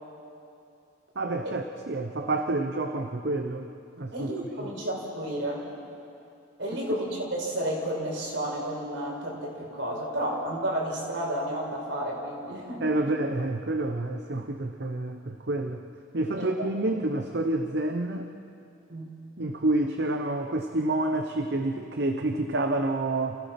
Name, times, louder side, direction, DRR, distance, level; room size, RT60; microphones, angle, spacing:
voice 1, 1.2-3.7 4.0-4.3 12.8-15.8 16.1-18.3 19.4-23.4, right 2 dB, 60° right, 5 dB, 0.9 m, -28 dB
voice 2, 4.1-5.6 6.6-13.0 16.4-16.5 18.9-19.2, right 1 dB, 75° right, -3 dB, 5.6 m, -31 dB
28.0 x 16.0 x 5.9 m, 2.6 s
head